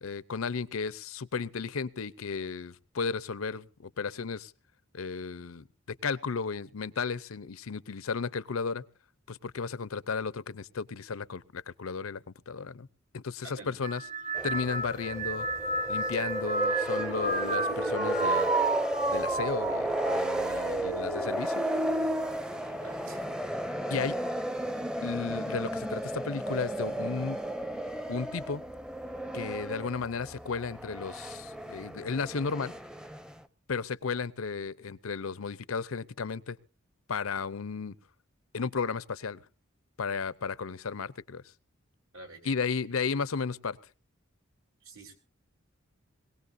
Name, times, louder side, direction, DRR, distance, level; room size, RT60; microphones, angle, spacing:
voice 1, 0.0-4.5 4.9-8.8 9.3-12.9 13.1-14.0 14.4-15.5 15.9-18.5 19.1-21.6 23.9-24.2 25.0-27.4 28.1-28.6 29.3-32.7 33.7-36.6 37.1-37.9 38.5-39.4 40.0-41.4 42.4-43.8, left 5 dB, 85° left, 18 dB, 0.7 m, -34 dB
voice 2, 13.4-13.8 22.7-23.3 42.1-42.5 44.8-45.1, right 2 dB, 80° right, 4 dB, 3.7 m, -48 dB
sound 1, 13.6-18.3, left 3 dB, 55° right, 6.7 m, -45 dB
sound 2, 13.8-23.4 23.9-24.5 25.4-25.8, right 2 dB, 35° right, 1.2 m, -33 dB
sound 3, 14.3-33.4, right 1 dB, 5° right, 0.6 m, -34 dB
22.0 x 17.5 x 2.6 m, 0.33 s
head